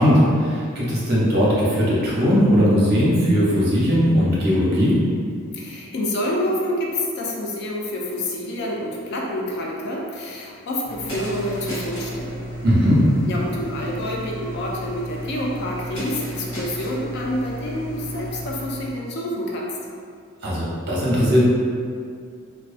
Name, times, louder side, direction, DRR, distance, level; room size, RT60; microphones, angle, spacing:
voice 1, 0.0-5.0 12.6-13.1 20.4-21.4, equal, 50° right, -7 dB, 0.7 m, -18 dB
voice 2, 5.5-12.5 13.3-19.8, left 1 dB, 50° left, -2 dB, 0.4 m, -28 dB
sound 1, 10.8-19.0, equal, 80° left, 0.9 m, -33 dB
2.3 x 2.2 x 2.4 m, 2.2 s
head